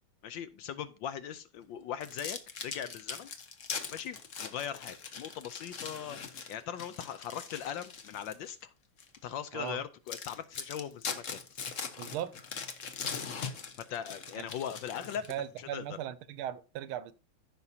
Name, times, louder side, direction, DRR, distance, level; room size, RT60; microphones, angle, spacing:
voice 1, 0.2-3.3 3.9-6.2 6.5-8.7 9.2-11.4 13.8-15.8, left 9 dB, 75° left, 1.2 m, -40 dB
sound 1, 2.0-8.5 9.0-9.2 9.7-9.8 10.1-15.6, left 6 dB, 50° left, 1.0 m, -41 dB
voice 2, 12.0-12.3 14.4-14.5 15.3-17.1, right 11 dB, 80° right, 1.5 m, -38 dB
14.5 x 6.1 x 2.7 m
omnidirectional pair, 2.4 m